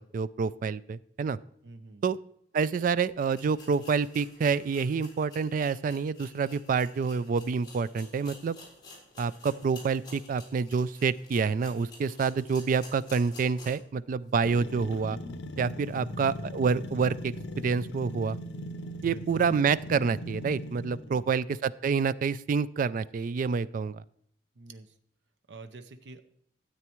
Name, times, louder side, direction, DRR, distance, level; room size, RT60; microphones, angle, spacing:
voice 1, 0.1-1.4 2.0-2.2 2.5-8.6 9.2-15.2 15.6-18.4 19.0-24.0, right 5 dB, 50° right, 18 dB, 0.3 m, -28 dB
voice 2, 1.6-2.0 15.9-16.2 19.0-19.2 21.0-21.4 24.5-25.0 25.5-26.3, right 3 dB, 75° right, 9 dB, 0.7 m, -47 dB
sound 1, 2.8-2.9 3.3-13.9 14.3-14.4 14.9-15.0, left 2 dB, 25° left, 3.5 m, -51 dB
sound 2, 14.4-21.2, left 1 dB, 80° left, 0.7 m, -39 dB
13.0 x 8.2 x 3.0 m, 0.67 s
head